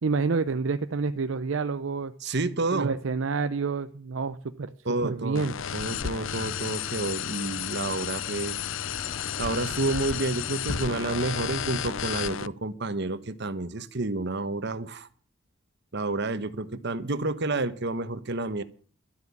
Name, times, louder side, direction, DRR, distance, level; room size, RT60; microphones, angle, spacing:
voice 1, 0.0-2.1 2.7-4.7 5.0-5.5, right 4 dB, 75° right, 10 dB, 0.6 m, -28 dB
voice 2, 2.2-3.0 4.8-8.6 9.4-15.1 15.9-18.6, right 2 dB, 60° right, 13 dB, 1.2 m, -30 dB
sound 1, 5.3-12.5, left 9 dB, 75° left, 0.5 m, -32 dB
sound 2, 5.6-11.8, left 1 dB, 35° left, 2.3 m, -46 dB
12.5 x 8.1 x 8.5 m, 0.42 s
head